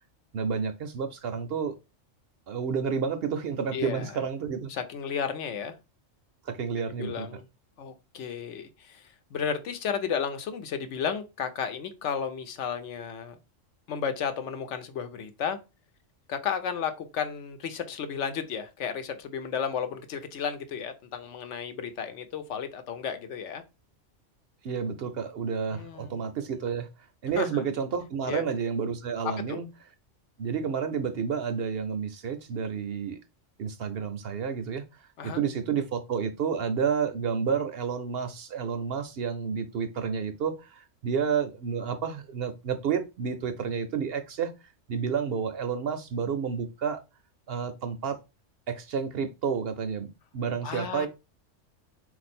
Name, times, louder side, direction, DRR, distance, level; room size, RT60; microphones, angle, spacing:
voice 1, 0.3-1.7 2.5-4.7 6.5-7.3 24.6-26.9 27.2-29.7 30.4-33.2 33.6-34.8 35.2-44.5 44.9-47.0 47.5-48.2 48.7-51.1, right 6 dB, 65° right, 0.7 m, -30 dB
voice 2, 3.7-4.2 4.7-5.8 7.0-7.5 7.8-13.4 13.9-15.6 16.3-23.6 25.7-26.5 27.4-27.6 28.3-28.4 29.2-29.6 35.2-35.4 50.6-51.1, left 7 dB, 70° left, 1.0 m, -33 dB
4.3 x 2.6 x 4.2 m
omnidirectional pair, 1.3 m